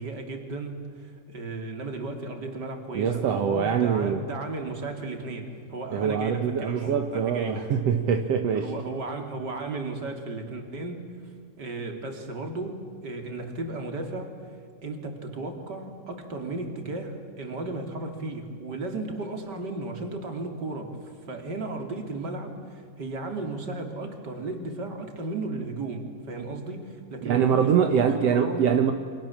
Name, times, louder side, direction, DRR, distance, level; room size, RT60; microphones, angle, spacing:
voice 1, 0.0-7.6 8.5-11.1 11.5-14.4 14.8-28.7, right 2 dB, 30° right, 4 dB, 3.3 m, -35 dB
voice 2, 2.9-4.2 5.9-8.7 27.2-28.9, right 7 dB, 60° right, 6 dB, 1.7 m, -24 dB
30.0 x 26.5 x 7.4 m, 2.3 s
omnidirectional pair, 4.3 m